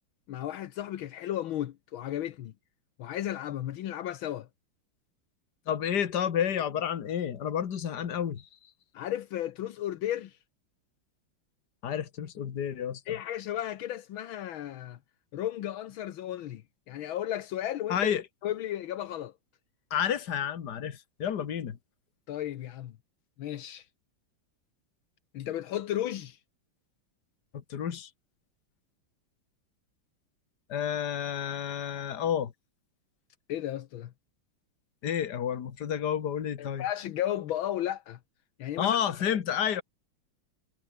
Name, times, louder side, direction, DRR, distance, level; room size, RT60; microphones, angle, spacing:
voice 1, 0.3-2.5 3.0-4.5 8.9-10.3 13.1-15.0 15.3-16.6 16.9-18.2 18.4-19.3 22.3-22.9 23.4-23.9 25.3-26.4 33.5-34.1 36.6-38.2 38.6-39.0, left 12 dB, 80° left, 1.7 m, -34 dB
voice 2, 5.7-8.5 11.8-13.2 17.9-18.2 19.9-21.8 27.7-28.1 30.7-32.5 35.0-36.9 38.8-39.8, left 9 dB, 55° left, 2.0 m, -30 dB
omnidirectional pair, 2.2 m